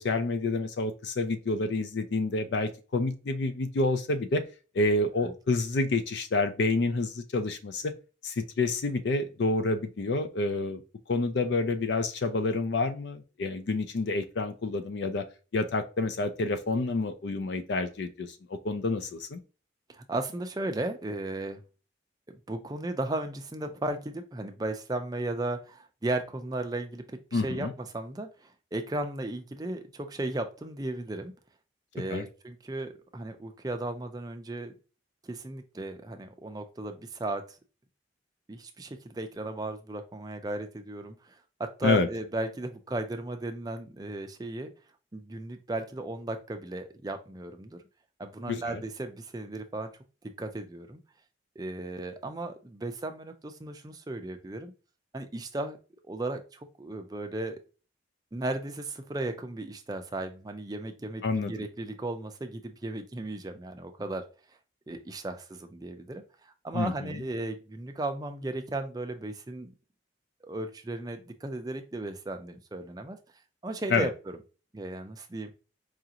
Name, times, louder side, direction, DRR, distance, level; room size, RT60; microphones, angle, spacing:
voice 1, 0.0-4.4 4.7-7.9 8.2-10.8 11.1-15.2 15.5-18.4 18.6-19.4 27.3-27.7 32.1-32.2 41.8-42.1 48.5-48.8 61.2-61.5 66.7-67.2 73.9-74.1, left 3 dB, 65° left, 9 dB, 0.4 m, -28 dB
voice 2, 19.9-21.6 22.5-27.7 27.9-31.3 31.9-34.7 35.2-37.6 38.5-44.7 45.1-47.8 48.2-49.9 50.4-51.0 51.6-54.7 55.1-55.8 56.0-57.6 58.3-64.2 64.9-69.7 70.4-73.2 73.6-74.1 74.7-75.5, right 2 dB, 20° right, 6 dB, 0.4 m, -35 dB
4.8 x 2.5 x 2.8 m, 0.34 s
head